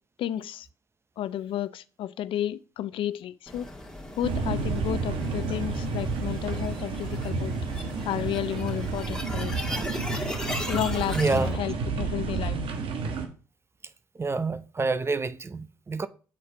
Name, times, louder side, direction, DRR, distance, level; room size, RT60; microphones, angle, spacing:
voice 1, 0.2-0.7 1.2-3.7 4.2-7.5 8.0-9.6 10.7-12.6, left 11 dB, 70° left, 0.4 m, -32 dB
sound 1, 3.5-11.5, left 1 dB, 10° left, 2.2 m, -37 dB
sound 2, 4.2-13.3, right 4 dB, 70° right, 1.2 m, -30 dB
voice 2, 11.1-11.6 14.2-16.1, right 3 dB, 25° right, 0.7 m, -27 dB
7.4 x 4.2 x 4.9 m
supercardioid pair, 60°, 9 cm